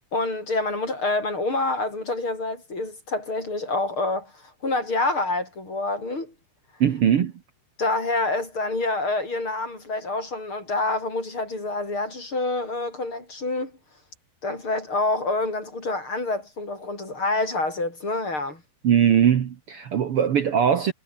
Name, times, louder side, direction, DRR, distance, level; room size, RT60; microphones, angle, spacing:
voice 1, 0.1-6.3 7.8-13.7 14.4-18.6, left 2 dB, 30° left, 7.6 m, -27 dB
voice 2, 6.8-7.3 18.8-20.9, right 8 dB, 85° right, 1.2 m, -20 dB
omnidirectional pair, 4.9 m